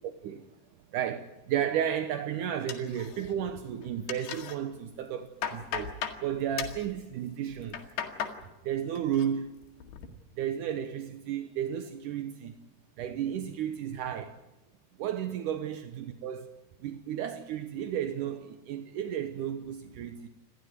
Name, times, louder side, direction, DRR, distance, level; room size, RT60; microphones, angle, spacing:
voice 1, 0.9-7.8 8.6-9.5 10.4-12.5 13.0-14.4 15.0-16.5 16.8-20.3, right 9 dB, 75° right, 8 dB, 1.9 m, -33 dB
sound 1, 2.7-3.5 3.8-4.6 5.0-6.2 6.6-6.9 7.5-8.4 8.7-9.3 9.6-10.1, left 8 dB, 80° left, 4.1 m, -37 dB
28.5 x 13.0 x 9.5 m, 1.0 s
omnidirectional pair, 4.8 m